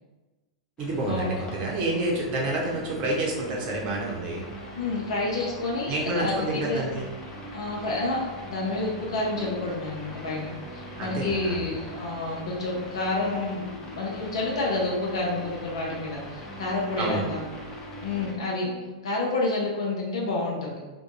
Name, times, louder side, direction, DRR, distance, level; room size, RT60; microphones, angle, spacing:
sound 1, 0.8-18.3, left 2 dB, 25° left, 0.7 m, -44 dB
voice 1, 0.8-4.5 5.9-7.1 11.0-11.7 17.0-17.2, right 2 dB, 40° right, -2 dB, 0.8 m, -28 dB
sound 2, 2.1-18.9, right 1 dB, 80° right, 0.9 m, -44 dB
voice 2, 4.7-6.8 7.5-17.4 18.0-18.7 19.0-20.8, left 2 dB, 65° left, -3 dB, 0.6 m, -29 dB
2.6 x 2.2 x 2.9 m, 1.2 s
figure-of-eight pair, 100°, 3 cm